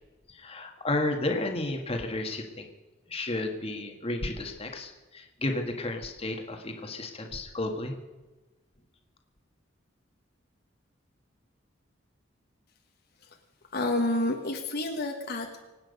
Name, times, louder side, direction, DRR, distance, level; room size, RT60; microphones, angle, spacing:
voice 1, 0.3-2.7 3.1-7.9, left 2 dB, 30° left, 3 dB, 1.6 m, -32 dB
voice 2, 13.7-15.6, left 1 dB, 50° left, 3 dB, 1.4 m, -29 dB
25.0 x 9.0 x 5.3 m, 1.2 s
head